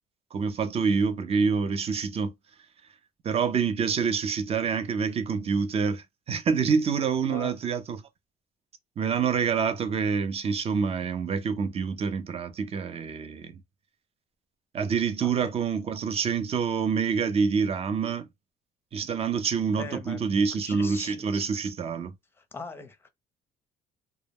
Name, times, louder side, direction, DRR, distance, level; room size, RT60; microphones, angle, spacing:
voice 1, 0.3-2.3 3.2-8.0 9.0-13.6 14.7-18.3 18.9-22.1, right 5 dB, 35° right, 0.5 m, -27 dB
voice 2, 15.2-15.5 19.8-21.2 22.4-23.1, left 4 dB, 15° left, 0.6 m, -40 dB
2.1 x 2.1 x 3.3 m
cardioid pair, 110°, 17 cm